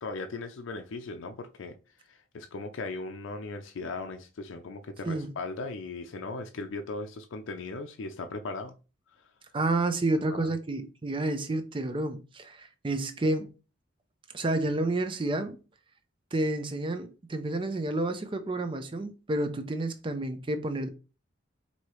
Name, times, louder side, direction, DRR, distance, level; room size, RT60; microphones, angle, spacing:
voice 1, 0.0-1.8 2.1-8.7 9.2-9.3 10.3-10.5, left 3 dB, 85° left, 0.4 m, -38 dB
voice 2, 9.5-13.5 14.3-15.6 16.3-20.9, right 2 dB, 25° right, 0.5 m, -30 dB
4.6 x 2.7 x 3.0 m
head